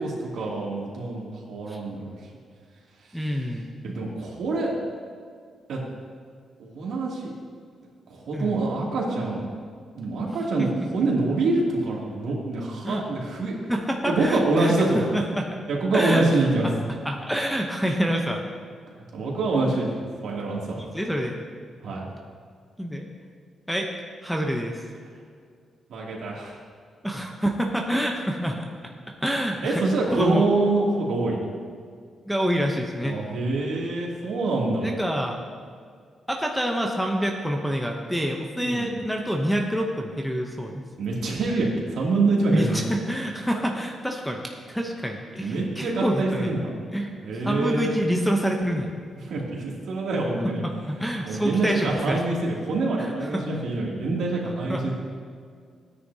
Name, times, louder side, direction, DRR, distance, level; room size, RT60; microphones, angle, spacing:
voice 1, 0.0-2.2 3.8-4.7 5.7-5.9 6.6-7.3 8.1-9.4 9.9-13.6 14.1-15.2 15.7-16.7 19.1-20.8 21.8-22.0 25.9-26.6 29.6-31.4 33.0-34.9 38.6-38.9 41.0-42.8 45.4-46.7 47.2-48.0 49.3-50.6 51.2-54.9, right 2 dB, 70° right, -4 dB, 2.6 m, -25 dB
voice 2, 3.1-3.7 8.3-8.6 10.6-10.7 12.8-13.0 13.7-15.5 15.9-16.3 16.9-18.4 20.8-21.4 22.8-23.1 23.7-23.9 24.2-24.8 27.0-28.7 29.2-29.8 30.1-30.4 32.3-33.2 34.8-35.4 36.3-40.8 42.5-44.4 44.7-46.5 46.9-47.1 47.4-48.9 50.6-52.2 53.0-53.4 54.7-54.9, equal, ahead, 1 dB, 0.7 m, -27 dB
16.5 x 9.7 x 2.8 m, 2.1 s
wide cardioid pair, 175°, 0 cm